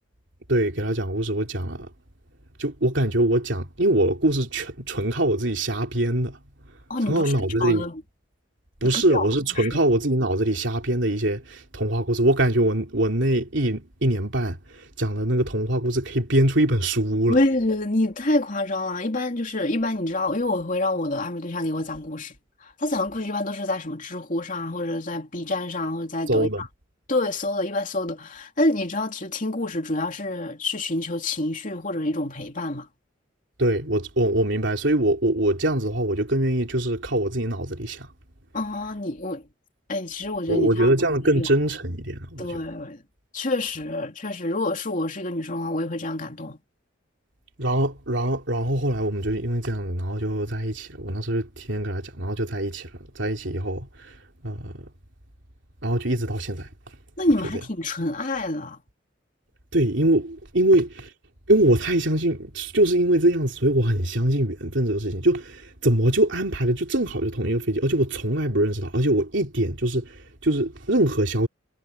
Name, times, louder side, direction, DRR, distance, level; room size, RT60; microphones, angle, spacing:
voice 1, 0.5-1.9 2.6-6.4 7.1-7.9 8.8-17.4 26.3-26.6 33.6-38.1 40.5-42.6 47.6-52.9 53.1-54.1 54.4-54.9 55.8-56.7 59.7-61.1 61.5-71.5, right 1 dB, 65° right, 3.3 m, -23 dB
voice 2, 6.9-7.3 7.6-8.0 8.9-9.3 9.5-9.8 17.3-26.7 27.1-32.9 38.5-39.4 39.9-40.9 41.3-41.5 42.4-43.0 43.3-46.6 57.2-58.8, left 2 dB, 40° left, 3.0 m, -27 dB
head